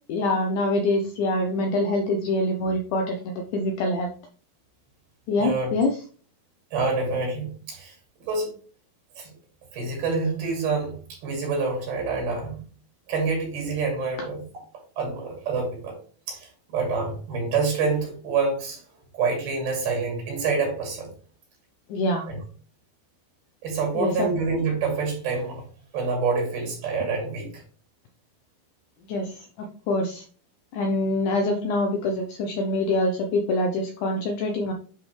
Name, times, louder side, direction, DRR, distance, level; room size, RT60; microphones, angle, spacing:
voice 1, 0.1-4.1 5.3-6.0 21.9-22.3 24.0-24.3 29.1-30.2 30.7-34.7, left 2 dB, 80° left, 4 dB, 1.9 m, -25 dB
voice 2, 5.4-5.7 6.7-7.9 8.2-8.5 9.2-9.3 9.7-12.6 13.1-14.4 15.0-16.0 16.3-18.8 19.1-21.1 22.3-22.4 23.6-25.6 25.9-27.6, right 4 dB, 80° right, 0 dB, 4.4 m, -27 dB
10.0 x 3.9 x 3.3 m, 0.42 s
omnidirectional pair, 4.3 m